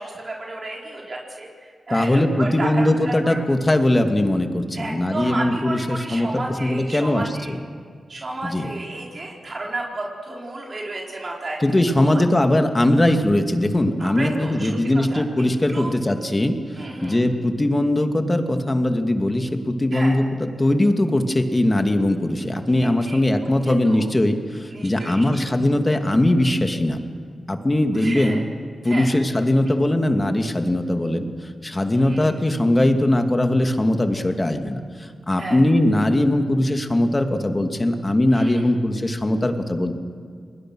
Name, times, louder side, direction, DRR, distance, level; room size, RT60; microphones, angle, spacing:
voice 1, 0.0-3.4 4.7-7.5 8.1-11.6 12.0-12.2 14.0-15.2 15.7-15.9 16.8-17.2 19.9-20.1 22.7-23.2 23.6-24.0 24.7-25.5 27.9-28.4 28.8-29.1 31.9-32.3 35.4-35.6 38.3-38.7, right 2 dB, 50° right, -2 dB, 4.7 m, -32 dB
voice 2, 1.9-7.6 8.4-8.7 11.6-27.0 27.5-28.4 28.8-31.3 31.6-39.9, left 1 dB, 25° left, 5 dB, 2.5 m, -20 dB
29.0 x 20.5 x 6.4 m, 2.1 s
cardioid pair, 50°, 0 cm